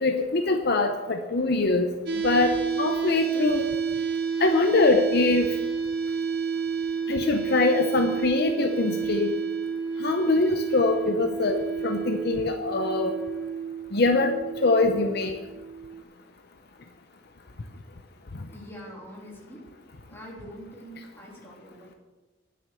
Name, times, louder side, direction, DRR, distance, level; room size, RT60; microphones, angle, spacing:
voice 1, 0.0-1.9 2.2-2.5 2.8-3.7 4.4-5.5 7.1-9.3 10.0-13.2 13.9-14.3 14.6-15.3, left 3 dB, 55° left, 6 dB, 0.7 m, -23 dB
sound 1, 2.1-16.0, right 5 dB, 55° right, 0.9 m, -30 dB
voice 2, 18.5-19.6 20.1-22.0, equal, 10° left, -4 dB, 3.0 m, -44 dB
10.0 x 7.7 x 6.8 m, 1.2 s
head